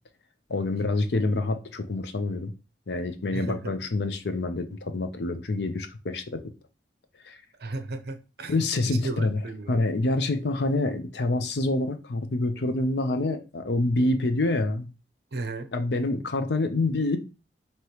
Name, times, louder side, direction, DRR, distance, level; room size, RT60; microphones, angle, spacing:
voice 1, 0.5-2.5 2.9-6.4 7.2-7.4 8.5-9.4 9.7-14.9 15.7-17.2, left 2 dB, 70° left, 0.6 m, -27 dB
voice 2, 3.3-3.8 7.6-8.5 8.8-9.9 15.3-15.7, right 3 dB, 65° right, 0.6 m, -35 dB
4.7 x 2.9 x 2.9 m
head